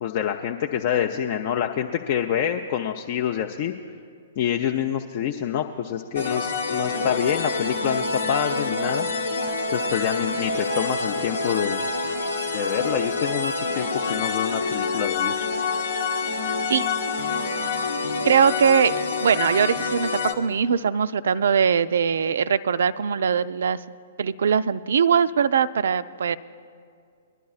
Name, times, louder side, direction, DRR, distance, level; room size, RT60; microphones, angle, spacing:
voice 1, 0.0-3.7 4.4-9.1 9.7-11.8 12.5-15.5, left 9 dB, 40° left, 3 dB, 0.5 m, -26 dB
sound 1, 6.2-20.3, left 4 dB, 65° left, 0.9 m, -27 dB
voice 2, 18.2-23.8 24.2-26.4, right 7 dB, 60° right, 15 dB, 0.4 m, -21 dB
21.5 x 11.5 x 2.4 m, 2.3 s
figure-of-eight pair, 115°, 0 cm